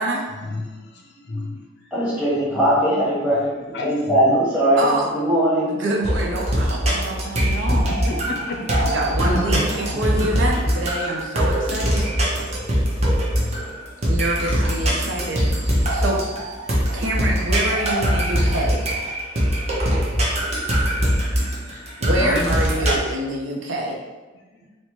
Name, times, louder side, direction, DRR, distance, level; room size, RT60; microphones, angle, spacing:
voice 1, 0.4-1.6 3.7-4.4 7.9-8.6 9.2-10.3 13.3-13.6 16.8-16.9 18.1-18.7 19.5-19.6 20.1-20.4 20.8-21.5 21.7-21.8 22.2-22.7, left 2 dB, 60° left, 1 dB, 0.5 m, -31 dB
voice 2, 1.9-3.5 3.8-5.7, equal, 10° right, -8 dB, 1.1 m, -20 dB
voice 3, 4.8-5.1 5.8-7.8 8.8-12.1 14.1-15.5 15.8-16.2 16.9-18.8 22.0-24.0, right 1 dB, 80° right, -1 dB, 0.7 m, -26 dB
sound 1, 6.0-23.0, equal, 35° right, 0.7 m, -22 dB
4.2 x 2.1 x 3.0 m, 1.2 s
head